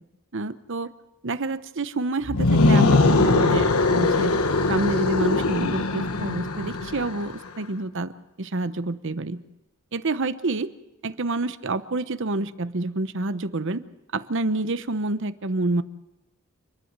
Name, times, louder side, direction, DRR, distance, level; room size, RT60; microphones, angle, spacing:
voice 1, 0.3-0.9 1.2-4.4 4.7-9.4 9.9-10.7 11.0-13.8 14.1-15.8, right 2 dB, 60° right, 13 dB, 0.9 m, -28 dB
sound 1, 2.2-7.3, left 3 dB, 85° left, 1.2 m, -21 dB
29.0 x 11.0 x 8.1 m, 0.97 s
head